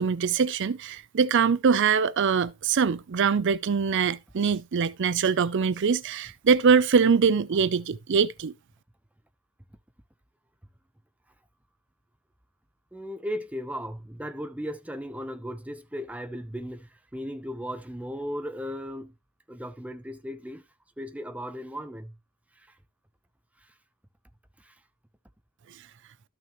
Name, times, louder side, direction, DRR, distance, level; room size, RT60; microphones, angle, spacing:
voice 1, 0.0-8.5, right 6 dB, 55° right, 0.4 m, -23 dB
voice 2, 12.9-19.1 19.5-20.6 21.0-22.1 22.6-22.8 24.6-24.8, equal, 5° right, 0.7 m, -36 dB
13.0 x 6.0 x 3.0 m
head